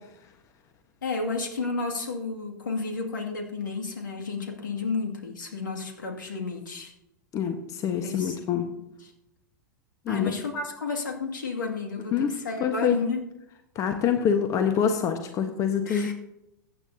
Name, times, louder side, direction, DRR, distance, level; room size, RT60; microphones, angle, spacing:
voice 1, 1.0-6.9 8.0-8.6 9.0-9.1 10.1-13.2 15.9-16.1, left 4 dB, 70° left, 1 dB, 2.3 m, -32 dB
voice 2, 7.3-8.7 10.1-10.3 12.1-12.3 12.6-13.0 13.7-16.1, left 7 dB, 30° left, 6 dB, 1.3 m, -25 dB
22.5 x 9.2 x 2.8 m, 0.87 s
figure-of-eight pair, 90°, 11 cm